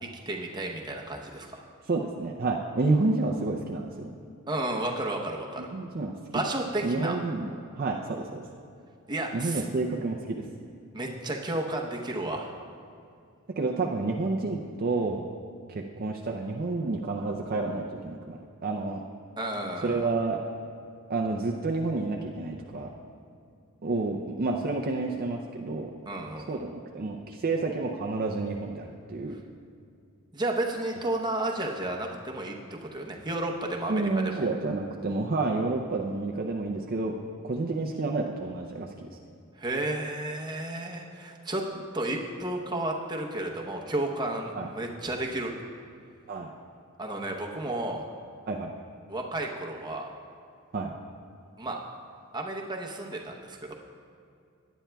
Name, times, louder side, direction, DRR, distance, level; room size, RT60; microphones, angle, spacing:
voice 1, 0.0-1.6 4.5-5.7 6.3-7.2 9.1-9.6 10.9-12.5 19.4-20.1 26.1-26.6 30.3-34.5 39.5-41.6 41.9-45.5 47.0-48.1 49.1-50.1 51.6-51.8 52.3-53.7, right 1 dB, 20° right, 0 dB, 0.9 m, -32 dB
voice 2, 1.9-4.1 5.7-6.1 6.8-8.4 9.3-10.4 13.6-15.2 15.7-19.0 19.8-20.4 21.1-22.9 23.8-25.9 26.5-29.4 33.9-37.1 37.4-38.9 44.6-44.7 46.3-46.5 48.5-48.7 50.7-50.9, right 3 dB, 40° right, 1 dB, 0.5 m, -29 dB
17.5 x 10.0 x 2.3 m, 2.4 s
head